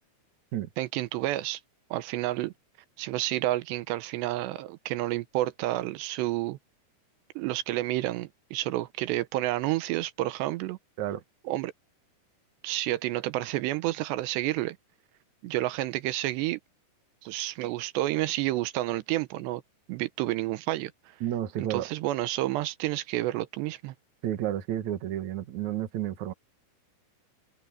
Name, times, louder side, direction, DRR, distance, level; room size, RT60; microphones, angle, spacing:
voice 1, 0.8-1.6 1.9-2.5 3.0-6.6 7.4-10.8 11.5-11.7 12.6-14.8 15.4-16.6 17.2-19.6 19.9-21.2 21.7-23.9, right 16 dB, 85° right, 3.0 m, -30 dB
voice 2, 21.2-21.9 24.2-26.3, right 12 dB, 55° right, 2.4 m, -31 dB
omnidirectional pair, 4.9 m